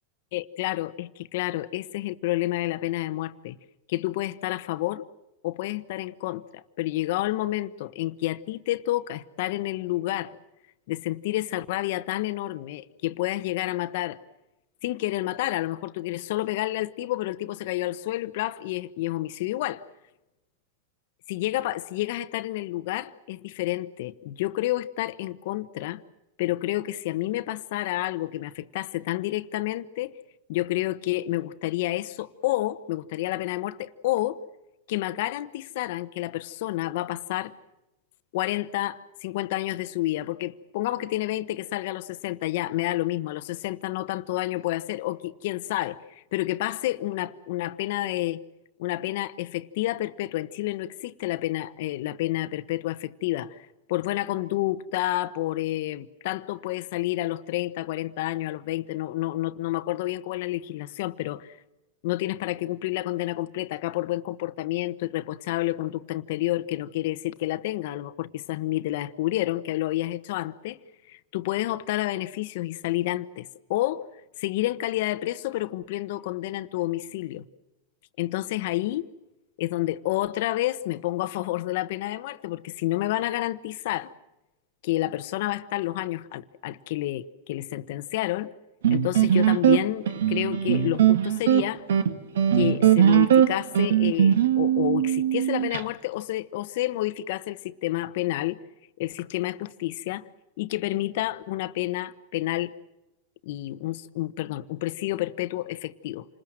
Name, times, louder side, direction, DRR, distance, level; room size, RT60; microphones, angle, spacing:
voice 1, 0.3-3.6 3.9-5.0 5.4-10.4 10.9-14.2 14.8-19.8 21.3-26.0 26.4-30.1 30.5-34.4 34.9-37.5 38.3-48.4 48.8-53.6 53.9-61.5 62.0-70.8 71.1-74.1 74.4-77.4 78.2-79.1 79.6-84.1 84.8-88.5 88.9-91.8 92.5-98.6 99.0-100.3 100.6-102.7 103.4-106.3, left 16 dB, 65° left, 1.2 m, -29 dB
sound 1, 88.8-95.8, right 9 dB, 85° right, 1.8 m, -20 dB
28.0 x 20.5 x 7.6 m
hypercardioid pair, 130°, 0 cm